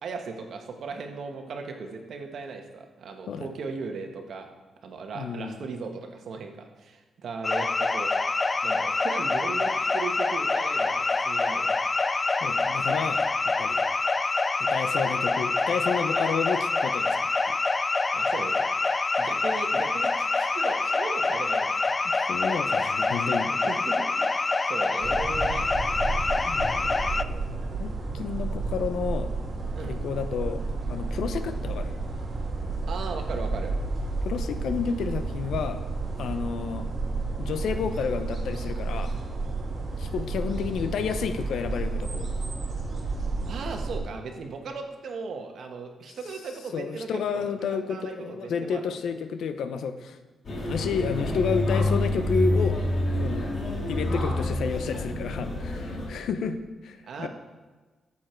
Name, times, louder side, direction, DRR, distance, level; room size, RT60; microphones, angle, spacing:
voice 1, 0.0-4.5 4.8-8.1 8.6-10.9 11.2-11.8 16.1-16.3 18.1-18.6 19.2-21.9 23.6-25.9 29.7-30.0 32.9-33.7 43.5-47.1 47.3-49.0 57.0-57.3, right 4 dB, 65° right, 4 dB, 1.4 m, -37 dB
voice 2, 5.1-5.7 12.4-13.8 14.6-17.6 22.0-23.5 26.5-26.9 27.8-29.3 29.8-30.6 30.9-32.0 34.2-35.8 36.2-36.9 37.4-39.2 40.0-42.3 46.7-50.2 50.7-52.8 53.2-53.5 53.9-57.3, left 6 dB, 80° left, 10 dB, 0.8 m, -31 dB
sound 1, 7.4-27.2, left 3 dB, 25° left, 0.3 m, -26 dB
sound 2, 25.0-44.0, right 3 dB, 45° right, 1.9 m, -31 dB
sound 3, 50.4-56.1, left 1 dB, 45° left, 2.3 m, -27 dB
13.0 x 7.3 x 4.6 m, 1.3 s
cardioid pair, 125°, 0 cm